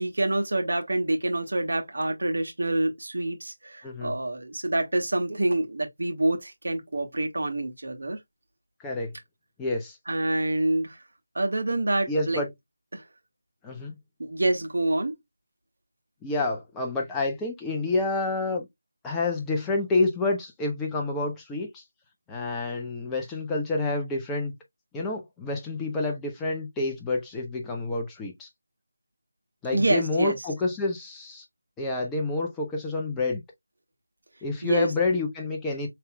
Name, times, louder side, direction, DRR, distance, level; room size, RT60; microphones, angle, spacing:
voice 1, 0.0-8.2 10.1-11.0 11.3-12.4 12.9-13.0 14.2-15.1 29.7-30.4 34.6-34.9, right 2 dB, 60° right, 1.5 m, -26 dB
voice 2, 9.6-10.0 12.1-12.5 13.6-14.0 16.2-18.7 19.0-21.8 22.3-24.5 24.9-28.5 29.6-31.4 31.8-33.4 34.4-35.9, left 3 dB, 5° left, 0.7 m, -28 dB
5.6 x 3.3 x 2.2 m
figure-of-eight pair, 160°, 0 cm